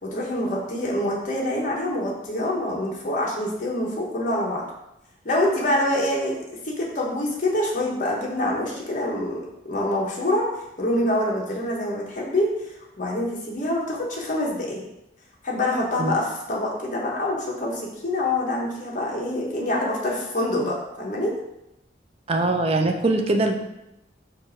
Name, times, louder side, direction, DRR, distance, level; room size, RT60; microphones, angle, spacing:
voice 1, 0.0-4.6 5.2-6.4 6.6-10.5 10.8-14.8 15.4-21.4, left 1 dB, 45° left, -3 dB, 1.0 m, -26 dB
voice 2, 22.3-23.6, right 2 dB, 35° right, 4 dB, 0.4 m, -22 dB
4.6 x 2.6 x 4.4 m, 0.89 s
head